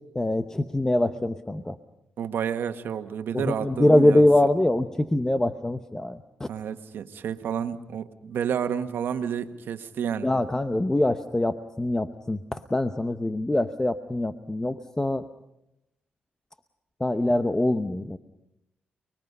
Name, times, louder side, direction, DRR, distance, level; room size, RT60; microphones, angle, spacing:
voice 1, 0.1-1.8 3.3-6.5 10.2-15.2 17.0-18.2, left 1 dB, 15° left, 9 dB, 0.9 m, -24 dB
voice 2, 2.2-4.2 6.5-10.3, right 8 dB, 75° right, 8 dB, 1.4 m, -30 dB
29.5 x 21.5 x 5.5 m, 0.84 s
cardioid pair, 85°, 4 cm